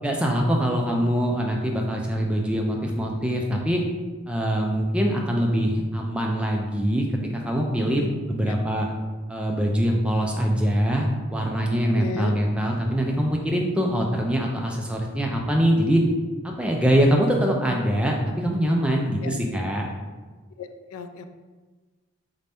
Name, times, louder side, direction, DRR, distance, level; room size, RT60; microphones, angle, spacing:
voice 1, 0.0-3.8 4.3-8.9 9.3-16.0 16.4-19.9, equal, 5° right, 0 dB, 0.3 m, -23 dB
voice 2, 11.9-12.3 19.2-19.3 20.6-21.3, left 5 dB, 80° left, 8 dB, 0.3 m, -34 dB
4.2 x 2.6 x 3.4 m, 1.3 s
head